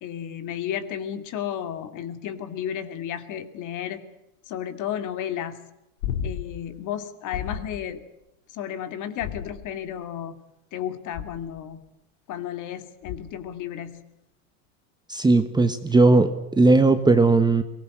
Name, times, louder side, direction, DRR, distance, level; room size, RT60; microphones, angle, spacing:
voice 1, 0.0-4.0 4.5-5.6 6.2-8.0 8.5-10.4 10.7-11.8 12.3-14.0, left 9 dB, 40° left, 10 dB, 2.6 m, -33 dB
sound 1, 6.0-6.7 7.3-7.8 9.2-9.9 11.1-11.6 13.0-13.5 15.9-16.0, left 8 dB, 75° left, 2.8 m, -33 dB
voice 2, 15.1-17.6, right 3 dB, 10° right, 9 dB, 1.2 m, -18 dB
23.0 x 19.5 x 7.9 m, 0.89 s
supercardioid pair, 135°, 44 cm